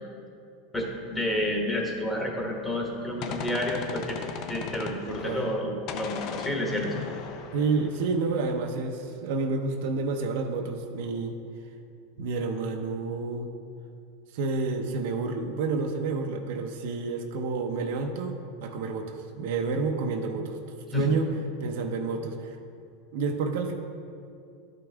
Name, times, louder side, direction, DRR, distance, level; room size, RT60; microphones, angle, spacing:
voice 1, 0.7-4.2 4.5-6.9 20.9-21.2, left 1 dB, 10° left, -1 dB, 1.3 m, -30 dB
Gunshot gunfire, 2.8-5.6 5.9-8.6, left 5 dB, 50° left, 0.6 m, -38 dB
voice 2, 5.2-5.5 7.5-11.4 12.2-13.5 14.3-20.6 20.9-21.3 21.6-22.5 23.1-23.7, right 4 dB, 70° right, 4 dB, 0.7 m, -29 dB
11.5 x 5.2 x 3.4 m, 2.4 s
supercardioid pair, 135°, 0 cm